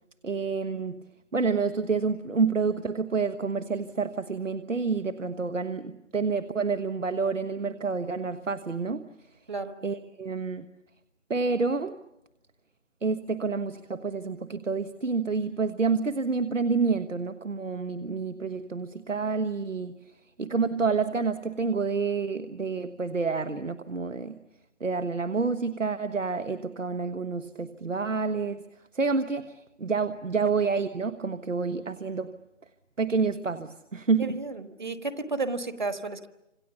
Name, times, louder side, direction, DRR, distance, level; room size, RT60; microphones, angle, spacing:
voice 1, 0.2-1.0 1.3-9.1 9.8-10.6 11.3-12.0 13.0-20.0 20.4-24.4 24.8-28.6 28.9-32.3 33.0-34.4, right 4 dB, 85° right, 10 dB, 1.4 m, -28 dB
voice 2, 34.2-36.3, right 3 dB, 40° right, 10 dB, 1.4 m, -32 dB
28.0 x 27.0 x 7.0 m, 0.91 s
figure-of-eight pair, 170°, 37 cm